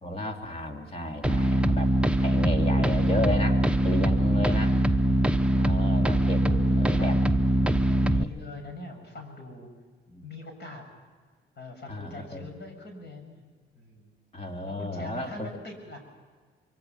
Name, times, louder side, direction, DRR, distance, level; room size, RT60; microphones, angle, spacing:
voice 1, 0.0-1.9 2.2-4.8 5.6-6.4 6.8-7.2 7.9-8.3 10.1-10.2 11.9-12.5 14.3-15.5, left 1 dB, 30° left, 3 dB, 3.1 m, -33 dB
sound 1, 1.2-8.2, equal, 5° right, 0.8 m, -23 dB
voice 2, 4.7-5.3 6.4-7.3 8.1-9.7 10.2-10.8 11.6-13.4 13.8-14.1 14.7-16.0, left 2 dB, 60° left, 4 dB, 6.9 m, -42 dB
25.0 x 24.0 x 6.1 m, 1.5 s
cardioid pair, 90°, 20 cm